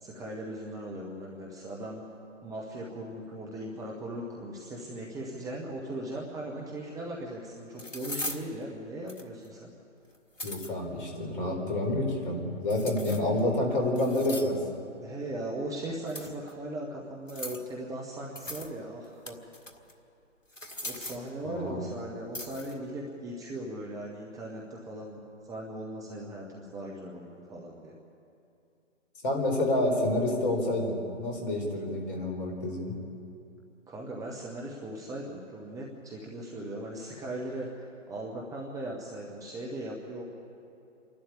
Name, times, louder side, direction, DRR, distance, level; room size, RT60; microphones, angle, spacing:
voice 1, 0.0-2.0 2.4-9.7 13.1-13.4 15.0-19.4 20.8-27.9 33.9-40.2, right 1 dB, 10° right, -2 dB, 1.1 m, -38 dB
sound 1, 6.9-7.0 7.8-8.5 9.1-9.5 10.1-10.7 12.7-13.4 14.0-14.6 16.1-16.5 17.3-17.7 18.4-18.7 19.0-19.9 20.5-21.3 22.3-22.8, left 1 dB, 85° left, 1.7 m, -39 dB
voice 2, 10.4-14.6 21.4-21.8 29.2-33.0, left 1 dB, 45° left, 1 dB, 4.5 m, -28 dB
27.5 x 12.0 x 8.7 m, 2.7 s
figure-of-eight pair, 130°, 37 cm